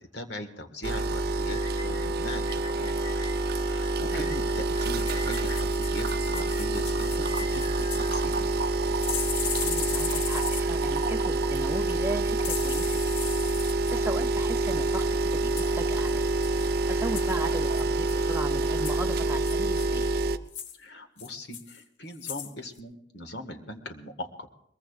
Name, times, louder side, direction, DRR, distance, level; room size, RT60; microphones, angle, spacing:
voice 1, 0.1-3.1 3.6-8.6 20.8-24.3, left 1 dB, 65° left, 6 dB, 1.6 m, -40 dB
sound 1, 0.8-20.4, right 2 dB, 55° right, 0.6 m, -27 dB
sound 2, 1.5-8.8, left 3 dB, 35° left, 1.0 m, -45 dB
sound 3, 4.8-8.1 9.0-10.8 12.4-14.0 15.6-15.7 16.1-16.2 16.4-16.7 17.1-17.4 17.7-18.4 18.8-19.0 19.5-20.1 20.5-20.8 21.2-21.8 22.1-22.5 22.8-22.9, left 8 dB, 90° left, 1.2 m, -37 dB
voice 2, 9.6-13.0 13.9-16.3 16.9-20.2, right 2 dB, 15° right, 4 dB, 0.5 m, -36 dB
22.0 x 22.0 x 2.4 m, 0.73 s
head